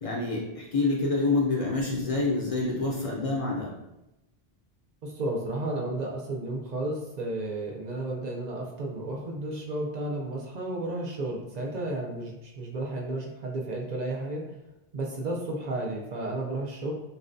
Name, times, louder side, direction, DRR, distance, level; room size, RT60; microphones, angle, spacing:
voice 1, 0.0-3.7, left 3 dB, 45° left, -4 dB, 0.5 m, -27 dB
voice 2, 5.0-14.4 14.9-16.9, right 2 dB, 55° right, -1 dB, 0.5 m, -32 dB
4.0 x 2.1 x 2.5 m, 0.93 s
omnidirectional pair, 1.1 m